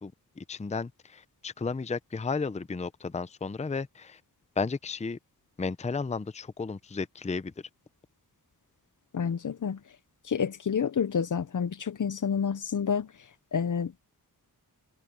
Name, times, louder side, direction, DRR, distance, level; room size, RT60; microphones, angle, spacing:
voice 1, 0.0-4.2 4.6-5.2 5.6-7.5, left 4 dB, 20° left, 0.5 m, -33 dB
voice 2, 9.1-9.8 10.3-13.1 13.5-14.0, left 7 dB, 55° left, 0.7 m, -29 dB
wide cardioid pair, 75°, 37 cm